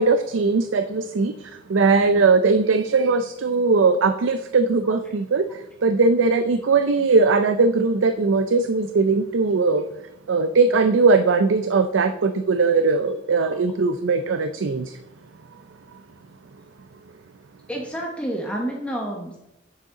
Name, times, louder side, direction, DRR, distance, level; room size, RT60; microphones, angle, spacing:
voice 1, 0.0-9.9 10.3-15.0, right 4 dB, 85° right, 9 dB, 0.5 m, -20 dB
voice 2, 17.7-19.4, right 1 dB, 5° left, -1 dB, 1.0 m, -29 dB
9.5 x 6.6 x 3.7 m, 0.90 s
head